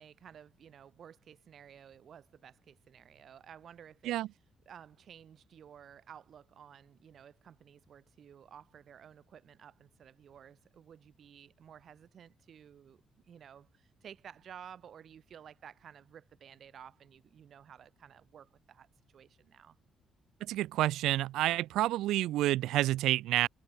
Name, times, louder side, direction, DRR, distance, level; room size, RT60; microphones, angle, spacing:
voice 1, 0.0-4.2 4.7-13.0 13.2-18.9 19.1-19.8, right 8 dB, 45° right, 8.0 m, -54 dB
voice 2, 20.4-23.5, right 15 dB, 85° right, 0.6 m, -29 dB
cardioid pair, 140°, 0 cm